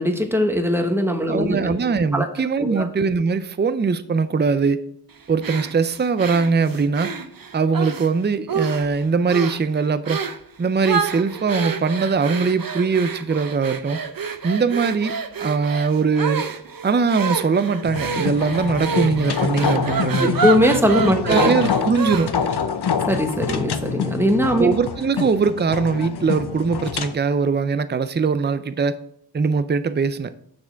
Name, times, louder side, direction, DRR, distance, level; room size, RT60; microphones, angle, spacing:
voice 1, 0.0-1.7 2.1-2.3 2.7-2.9 20.2-21.5 23.1-24.7, equal, 5° right, 5 dB, 1.1 m, -20 dB
voice 2, 1.3-4.8 5.3-7.1 7.5-10.2 10.6-14.0 14.4-15.1 15.4-16.4 16.8-20.3 21.2-22.3 24.6-29.0 29.3-30.3, right 5 dB, 30° right, 13 dB, 0.5 m, -21 dB
sound 1, 5.4-8.1 8.5-9.0 9.3-9.6 10.1-10.4 10.8-22.5, right 5 dB, 60° right, 0.7 m, -28 dB
sound 2, 17.8-27.1, left 7 dB, 85° left, 0.6 m, -26 dB
6.7 x 6.1 x 4.5 m, 0.71 s
wide cardioid pair, 55°, 38 cm